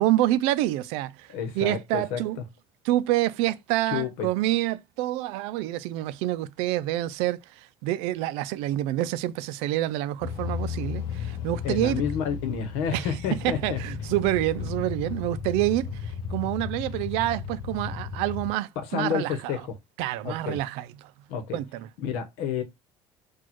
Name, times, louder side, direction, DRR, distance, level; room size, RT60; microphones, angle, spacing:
voice 1, 0.0-2.4 2.8-12.0 12.9-19.5 20.0-20.9 21.5-21.9, right 15 dB, 90° right, 0.4 m, -27 dB
voice 2, 1.3-2.2 3.9-4.3 11.6-13.8 18.9-19.7 20.2-20.6 21.3-21.6 22.0-22.6, left 7 dB, 85° left, 1.0 m, -30 dB
sound 1, 10.2-18.5, left 6 dB, 45° left, 0.5 m, -34 dB
6.2 x 2.4 x 3.0 m
cardioid pair, 180°, 10 cm